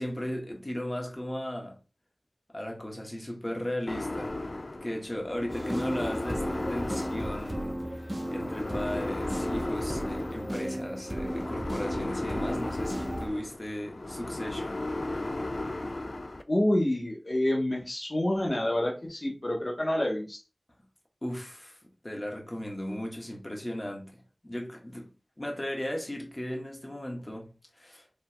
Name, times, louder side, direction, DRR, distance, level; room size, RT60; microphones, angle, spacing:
voice 1, 0.0-1.8 2.5-4.4 4.8-14.8 21.2-21.8 22.0-25.1 25.4-28.1, left 1 dB, 35° left, 1.4 m, -36 dB
sound 1, 3.9-16.4, left 2 dB, 70° left, 0.4 m, -35 dB
sound 2, 5.5-13.3, right 1 dB, 30° right, 1.0 m, -35 dB
voice 2, 16.5-20.4, left 1 dB, 50° left, 1.1 m, -28 dB
5.3 x 3.4 x 2.2 m
wide cardioid pair, 40°, 0 cm